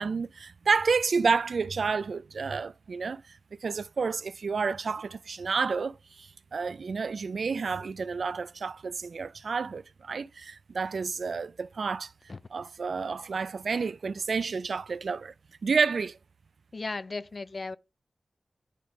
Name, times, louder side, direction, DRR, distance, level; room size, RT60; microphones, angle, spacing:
voice 1, 0.0-3.2 3.6-12.1 12.5-15.3 15.6-16.2, right 5 dB, 85° right, 0.3 m, -30 dB
voice 2, 16.7-17.8, left 3 dB, 55° left, 0.4 m, -35 dB
10.0 x 3.6 x 4.6 m
wide cardioid pair, 80°, 0 cm